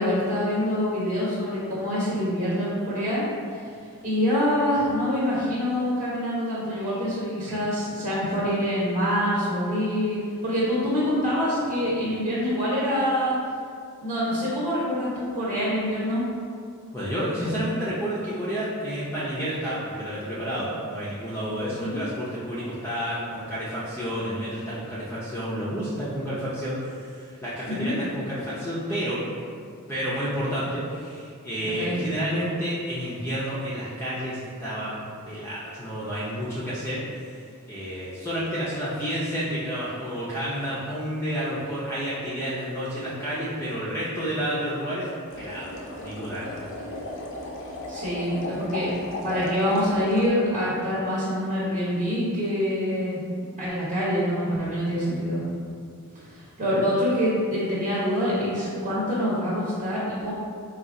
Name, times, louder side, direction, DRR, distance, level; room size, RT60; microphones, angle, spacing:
voice 1, 0.0-3.2 4.0-13.3 14.0-16.2 21.8-22.0 27.6-27.9 31.6-32.0 47.9-48.9 49.2-53.2 53.6-55.4 56.3-60.3, equal, 30° right, -9 dB, 0.9 m, -25 dB
voice 2, 16.9-29.2 29.9-35.0 35.3-37.4 37.6-45.1 45.4-45.7 46.0-46.6, equal, 10° left, -9 dB, 0.5 m, -30 dB
sound 1, 45.3-50.3, left 1 dB, 60° left, 0.5 m, -36 dB
4.1 x 2.4 x 3.7 m, 2.3 s
head